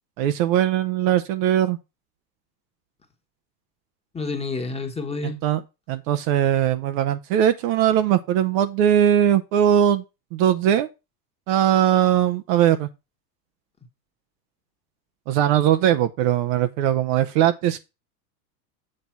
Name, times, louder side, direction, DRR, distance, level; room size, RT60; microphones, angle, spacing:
voice 1, 0.2-1.8 5.2-5.6 5.9-10.0 10.3-10.9 11.5-12.9 15.3-17.8, right 10 dB, 50° right, 0.8 m, -20 dB
voice 2, 4.1-5.4, left 3 dB, 10° left, 1.3 m, -29 dB
7.7 x 3.9 x 5.8 m
supercardioid pair, 120°, 50 cm